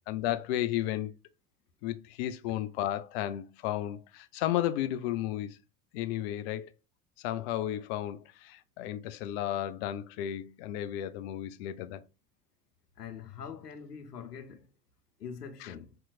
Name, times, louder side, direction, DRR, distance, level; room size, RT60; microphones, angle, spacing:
voice 1, 0.1-1.1 1.8-5.6 5.9-6.7 7.2-12.0 15.6-15.7, left 12 dB, 45° left, 0.4 m, -33 dB
voice 2, 13.0-14.7 15.2-16.0, left 7 dB, 85° left, 0.7 m, -43 dB
4.3 x 2.9 x 2.4 m
figure-of-eight pair, 80°, 46 cm